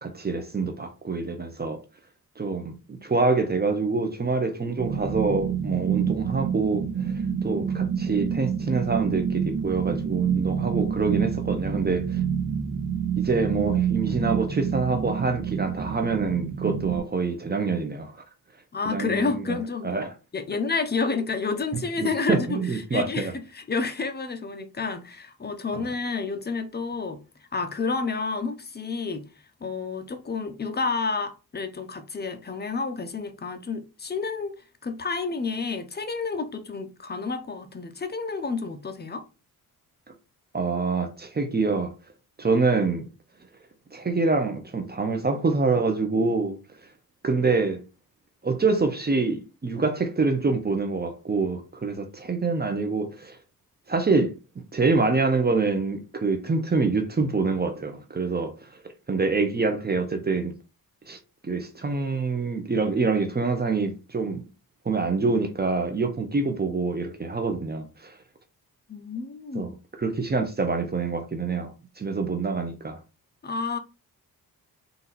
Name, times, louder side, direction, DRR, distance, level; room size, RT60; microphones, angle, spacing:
voice 1, 0.0-1.8 2.4-12.2 13.2-18.1 18.9-19.6 19.8-20.1 22.0-23.3 25.8-25.9 40.5-41.9 42.4-43.1 43.9-46.6 47.2-47.8 48.4-53.4 53.9-54.4 54.7-58.5 59.1-60.5 61.1-61.2 61.4-64.4 64.8-68.2 69.5-69.7 70.0-73.0, right 4 dB, 25° right, 0.8 m, -26 dB
sound 1, 4.8-17.0, right 7 dB, 55° right, 1.2 m, -28 dB
voice 2, 18.7-19.9 20.3-27.2 27.5-29.2 29.6-34.5 34.8-39.2 68.9-69.7 73.4-73.8, left 4 dB, 25° left, 0.8 m, -30 dB
4.0 x 2.8 x 4.1 m
cardioid pair, 95°, 36 cm